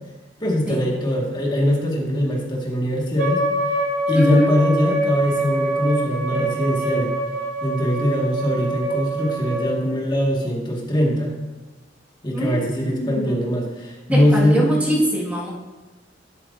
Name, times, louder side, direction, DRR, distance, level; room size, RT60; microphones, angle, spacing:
voice 1, 0.4-3.4 4.1-7.1 7.6-11.3 12.2-14.7, left 1 dB, 25° left, -2 dB, 1.7 m, -21 dB
Wind instrument woodwind instrument, 3.2-9.7, right 1 dB, 90° right, 2.4 m, -24 dB
voice 2, 4.1-4.5 12.3-13.4 14.1-15.5, right 1 dB, 10° right, -5 dB, 1.8 m, -24 dB
11.0 x 8.0 x 2.6 m, 1.1 s
head